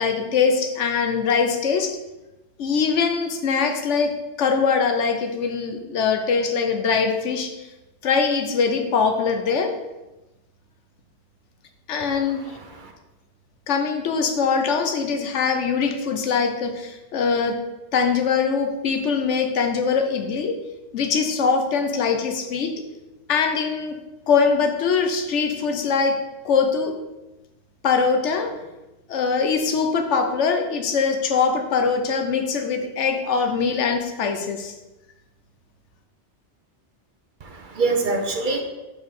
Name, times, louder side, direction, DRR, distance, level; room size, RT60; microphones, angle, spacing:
voice 1, 0.0-1.9 2.6-4.1 4.4-7.7 8.0-9.7 11.9-12.6 13.7-17.6 17.9-20.6 20.9-22.7 23.3-24.0 24.3-26.2 26.4-26.9 27.8-28.5 29.1-34.7, left 5 dB, 90° left, 5 dB, 1.1 m, -22 dB
voice 2, 12.0-12.9 37.4-38.6, right 3 dB, 50° right, 4 dB, 0.8 m, -26 dB
4.8 x 4.5 x 5.4 m, 1.0 s
omnidirectional pair, 1.2 m